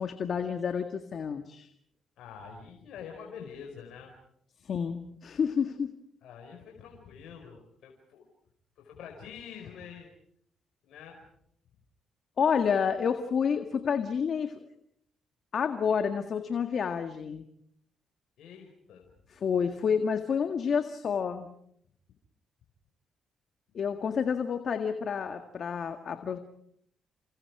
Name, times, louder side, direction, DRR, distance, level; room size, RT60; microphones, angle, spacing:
voice 1, 0.0-1.7 4.6-5.9 12.4-14.6 15.5-17.5 19.3-21.5 23.7-26.4, left 6 dB, 60° left, 7 dB, 1.8 m, -29 dB
voice 2, 2.2-4.1 6.2-8.3 8.8-10.1 10.8-11.2 18.4-19.1, left 7 dB, 75° left, 1 dB, 5.0 m, -46 dB
29.5 x 28.5 x 4.8 m, 0.71 s
supercardioid pair, 70°, 0 cm